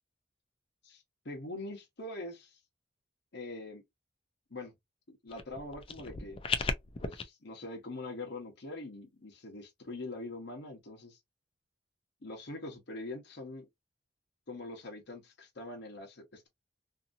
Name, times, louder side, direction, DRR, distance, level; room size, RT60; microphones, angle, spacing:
voice 1, 0.8-2.6 3.3-3.8 4.5-4.7 5.1-6.4 7.0-11.2 12.2-13.7 14.5-16.5, left 2 dB, 65° left, 1.0 m, -43 dB
sound 1, 5.3-7.2, left 4 dB, 30° left, 0.4 m, -36 dB
2.8 x 2.7 x 2.4 m
head